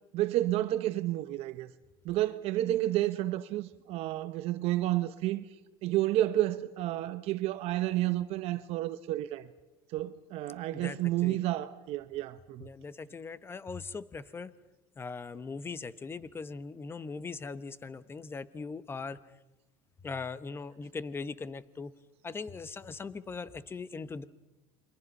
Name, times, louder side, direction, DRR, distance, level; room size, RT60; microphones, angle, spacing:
voice 1, 0.1-1.7 2.0-5.4 5.8-9.5 9.9-12.7, right 15 dB, 60° right, 0.9 m, -30 dB
voice 2, 10.7-11.4 12.6-14.5 15.0-19.2 20.0-21.9 22.2-24.2, left 4 dB, 20° left, 1.0 m, -40 dB
29.5 x 23.5 x 5.4 m
supercardioid pair, 120°, 12 cm